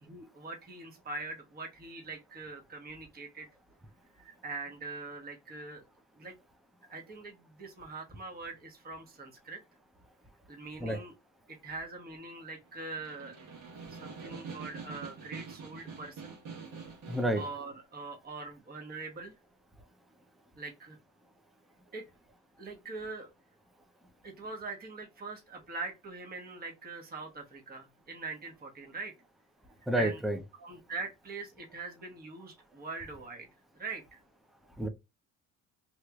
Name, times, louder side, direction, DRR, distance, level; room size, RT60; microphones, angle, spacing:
voice 1, 0.0-3.5 4.2-5.8 6.2-6.3 6.9-9.6 10.5-11.1 11.5-13.4 13.7-16.4 17.3-19.3 20.6-21.0 21.9-22.0 22.6-23.3 24.2-29.1 30.0-30.2 30.6-33.5 33.7-34.2, right 3 dB, 25° right, 1.0 m, -42 dB
Snare drum, 12.7-17.7, right 5 dB, 65° right, 1.5 m, -45 dB
voice 2, 17.1-17.4 29.9-30.4 34.8-34.9, right 1 dB, ahead, 0.5 m, -29 dB
3.0 x 3.0 x 2.3 m
cardioid pair, 115°, 34 cm